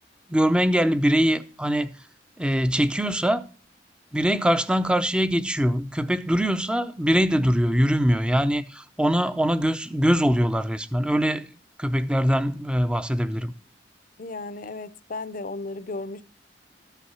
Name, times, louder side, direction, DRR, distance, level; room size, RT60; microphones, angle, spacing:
voice 1, 0.3-2.0 2.4-3.5 4.1-11.5 11.8-13.5, equal, 5° right, 0.6 m, -22 dB
voice 2, 14.2-16.2, left 3 dB, 50° left, 0.6 m, -34 dB
13.5 x 5.7 x 5.6 m
head